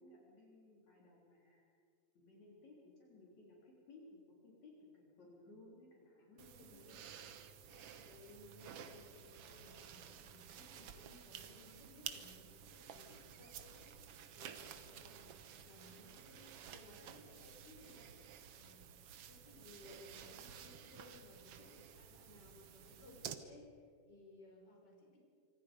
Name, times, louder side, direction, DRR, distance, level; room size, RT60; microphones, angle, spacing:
voice 1, 0.0-1.6 2.1-6.9, left 2 dB, 60° left, -3 dB, 4.9 m, -60 dB
voice 2, 6.0-7.1 7.7-14.0 14.3-18.1 18.5-18.9 19.2-25.2, left 2 dB, 30° left, -1 dB, 5.5 m, -61 dB
sound 1, 6.4-23.3, right 8 dB, 60° right, 1.7 m, -53 dB
26.5 x 24.5 x 5.3 m, 2.2 s
omnidirectional pair, 3.7 m